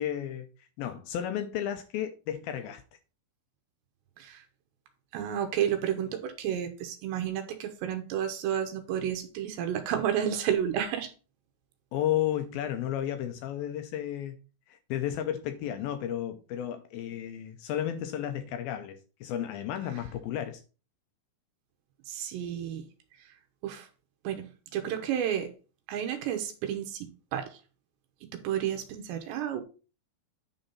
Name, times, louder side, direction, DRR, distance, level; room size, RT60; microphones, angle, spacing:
voice 1, 0.0-2.8 11.9-14.4 14.7-20.6, left 11 dB, 85° left, 2.2 m, -33 dB
voice 2, 5.1-11.1 22.1-22.8 23.2-23.3 23.6-23.9 24.2-25.5 25.9-27.6 28.3-29.6, right 9 dB, 85° right, 3.1 m, -31 dB
10.0 x 3.9 x 5.5 m
omnidirectional pair, 4.9 m